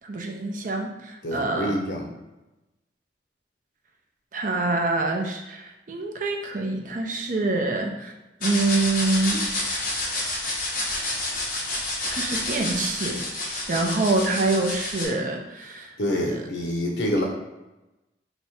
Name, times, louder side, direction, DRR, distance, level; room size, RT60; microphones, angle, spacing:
voice 1, 0.1-1.8 4.3-8.1 8.4-9.4 10.1-10.3 12.1-16.4, right 2 dB, 45° right, 2 dB, 0.6 m, -26 dB
voice 2, 1.2-2.0 16.0-17.2, equal, 80° left, 0 dB, 0.9 m, -26 dB
sound 1, 8.4-15.0, left 2 dB, 55° left, 1.1 m, -29 dB
3.3 x 2.9 x 4.3 m, 1.0 s
head